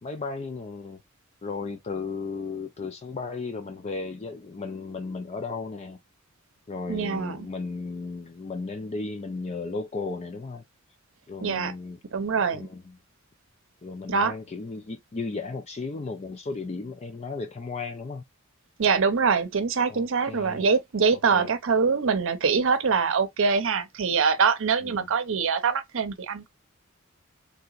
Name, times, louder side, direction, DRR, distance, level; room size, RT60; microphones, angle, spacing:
voice 1, 0.0-1.0 1.4-6.0 6.7-10.6 11.3-12.0 12.5-13.0 13.8-18.3 19.9-20.7 21.3-21.5 24.8-25.1, left 4 dB, 30° left, 0.4 m, -35 dB
voice 2, 6.9-7.4 11.4-11.7 12.1-12.7 14.1-14.3 18.8-26.5, right 5 dB, 65° right, 0.6 m, -24 dB
3.4 x 2.8 x 2.3 m
head